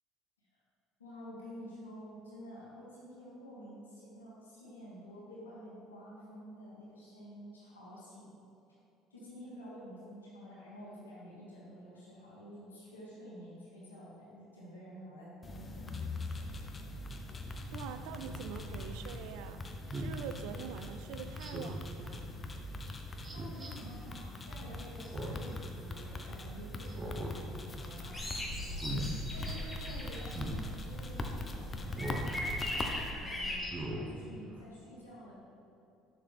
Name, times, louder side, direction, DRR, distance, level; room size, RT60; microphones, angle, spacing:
voice 1, 1.0-8.4 9.1-16.5 23.3-28.2 29.3-32.6 33.0-35.3, equal, 90° left, -8 dB, 1.5 m, -50 dB
sound 1, 15.4-33.1, left 2 dB, 30° left, 0.7 m, -42 dB
voice 2, 17.5-19.6 19.9-22.3, right 8 dB, 70° right, 9 dB, 0.4 m, -45 dB
Speech synthesizer, 18.2-18.4 19.9-20.2 21.4-21.9 23.2-23.7 25.0-25.5 25.9-26.0 26.8-27.4 27.7-28.0 28.7-29.1 30.3-30.6 31.9-32.3 32.8-32.9 33.6-34.1 34.5-34.6, right 1 dB, 30° right, 1.0 m, -40 dB
sound 2, 28.1-33.6, left 1 dB, 10° left, 1.5 m, -39 dB
6.6 x 5.9 x 3.4 m, 2.8 s
hypercardioid pair, 60°, 0 cm